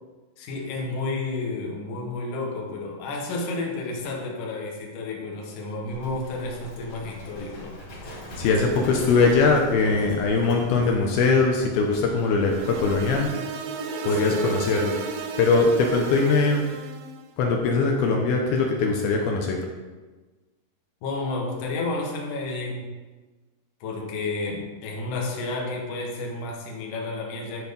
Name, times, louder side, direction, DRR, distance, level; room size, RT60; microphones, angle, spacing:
voice 1, 0.4-7.7 8.4-8.9 14.1-14.5 21.0-23.0 23.8-27.7, left 2 dB, 65° left, -1 dB, 2.1 m, -31 dB
Livestock farm animals working animals, 5.9-13.3, equal, 45° left, 2.3 m, -40 dB
voice 2, 8.4-13.3 14.1-14.9 15.4-16.6 17.4-19.6, left 4 dB, 80° left, 1 dB, 2.3 m, -21 dB
sound 1, 12.4-17.2, right 5 dB, 85° right, 2.6 m, -34 dB
11.5 x 4.4 x 5.3 m, 1.3 s
omnidirectional pair, 5.4 m